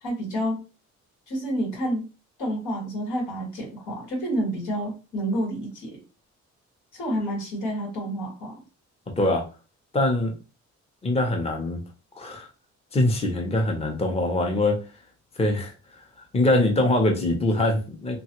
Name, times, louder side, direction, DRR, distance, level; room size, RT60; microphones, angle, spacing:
voice 1, 0.0-0.6 1.3-2.1 2.4-6.0 6.9-8.6, equal, 85° left, -2 dB, 1.8 m, -29 dB
voice 2, 9.9-10.3 11.0-11.8 12.2-12.5 12.9-14.8 15.4-15.7 16.3-18.2, left 1 dB, 20° left, 2 dB, 0.7 m, -23 dB
3.1 x 2.3 x 2.9 m, 0.33 s
cardioid pair, 90°, 30 cm